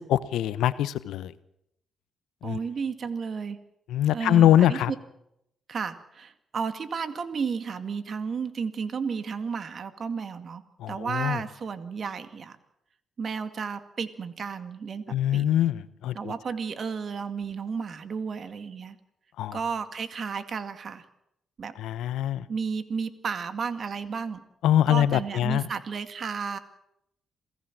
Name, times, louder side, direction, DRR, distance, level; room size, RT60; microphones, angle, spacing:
voice 1, 0.1-1.3 2.4-2.6 3.9-4.9 10.8-11.4 15.1-16.1 19.4-19.6 21.8-22.4 24.6-25.6, left 11 dB, 80° left, 16 dB, 0.9 m, -23 dB
voice 2, 2.4-3.6 4.1-5.0 5.7-10.6 10.9-12.6 13.2-15.5 16.1-19.0 19.5-21.1 21.6-21.7 22.5-24.4 24.9-26.6, right 5 dB, 55° right, 10 dB, 2.1 m, -33 dB
28.0 x 16.0 x 7.5 m, 0.83 s
supercardioid pair, 60°, 0 cm